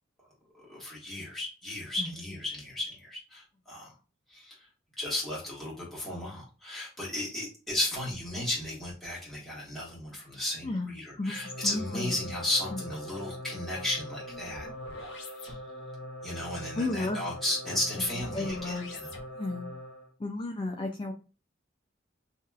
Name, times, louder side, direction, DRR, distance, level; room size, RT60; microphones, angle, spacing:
voice 1, 0.6-3.9 4.3-4.6 5.0-14.7 15.0-15.6 16.2-19.1, left 1 dB, ahead, -6 dB, 1.2 m, -34 dB
voice 2, 11.2-12.3 12.7-12.8 16.7-17.2 17.7-17.8 18.3-18.9 19.3-19.7 20.2-21.1, left 2 dB, 25° left, 1 dB, 0.3 m, -33 dB
sound 1, 11.3-20.1, left 1 dB, 65° left, 0.8 m, -42 dB
2.9 x 2.8 x 2.3 m, 0.34 s
head